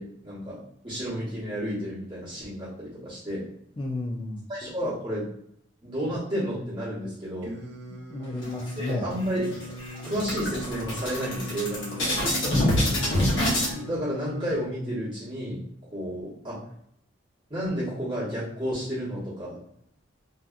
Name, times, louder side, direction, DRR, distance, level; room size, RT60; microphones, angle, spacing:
voice 1, 0.0-3.5 4.5-5.2 5.8-7.5 8.8-9.5 10.0-12.2 13.7-15.6 15.9-16.6 17.5-19.6, equal, 25° right, -11 dB, 1.0 m, -31 dB
voice 2, 3.8-4.4 8.1-9.1 12.5-13.0, left 2 dB, 25° left, 0 dB, 0.3 m, -31 dB
Singing, 7.4-14.6, left 1 dB, 80° right, 0.6 m, -41 dB
sound 1, 8.4-9.1 9.5-9.6 9.9-13.7, left 1 dB, 75° left, 0.9 m, -26 dB
2.7 x 2.3 x 2.3 m, 0.71 s
head